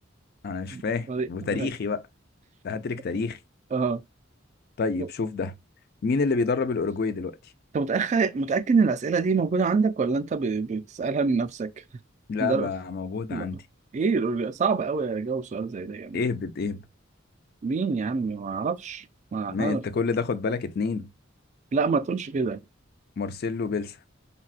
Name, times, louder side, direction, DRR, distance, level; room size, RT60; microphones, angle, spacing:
voice 1, 0.4-2.0 2.6-3.4 4.8-5.5 6.0-7.4 12.3-13.6 16.1-16.8 19.5-21.1 23.2-23.9, left 4 dB, 50° left, 0.4 m, -28 dB
voice 2, 1.1-1.7 3.7-4.0 5.0-5.1 7.7-11.7 12.4-12.7 13.3-13.5 13.9-16.2 17.6-19.1 19.3-19.8 21.7-22.6, right 4 dB, 35° right, 0.3 m, -26 dB
3.9 x 2.2 x 2.4 m
head